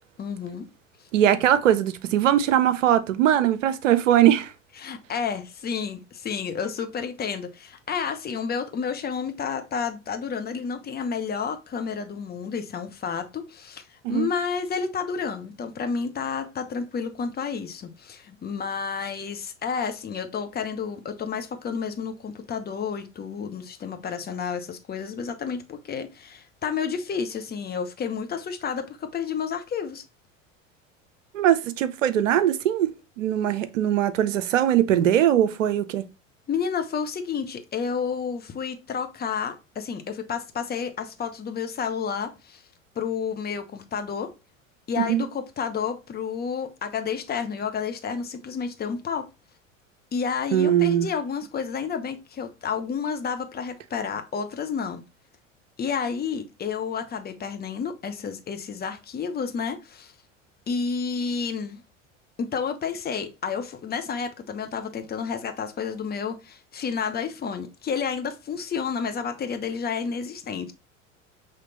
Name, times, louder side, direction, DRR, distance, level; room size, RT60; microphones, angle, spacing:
voice 1, 0.2-0.6 4.8-13.8 14.1-30.0 36.5-42.6 42.9-44.3 44.9-49.3 50.1-55.0 55.8-60.1 60.7-61.8 62.4-70.7, left 6 dB, 25° left, 0.9 m, -30 dB
voice 2, 1.1-4.5 14.0-14.3 31.3-32.9 33.2-36.1 45.0-45.2 50.5-51.1, right 11 dB, 75° right, 0.7 m, -21 dB
5.9 x 3.2 x 2.8 m
figure-of-eight pair, 75°, 39 cm